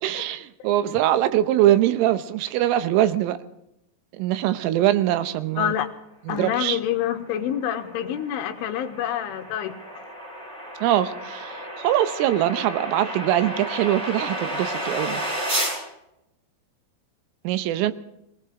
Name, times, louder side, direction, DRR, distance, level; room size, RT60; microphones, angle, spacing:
voice 1, 0.0-3.4 4.2-5.7 6.3-6.8 10.8-15.2 17.4-17.9, right 13 dB, 80° right, 11 dB, 3.5 m, -22 dB
voice 2, 5.6-5.9 6.3-10.0, left 10 dB, 80° left, 6 dB, 3.5 m, -27 dB
sound 1, 7.1-15.8, right 1 dB, 30° right, 7.2 m, -32 dB
20.5 x 18.0 x 3.7 m, 0.83 s
omnidirectional pair, 5.8 m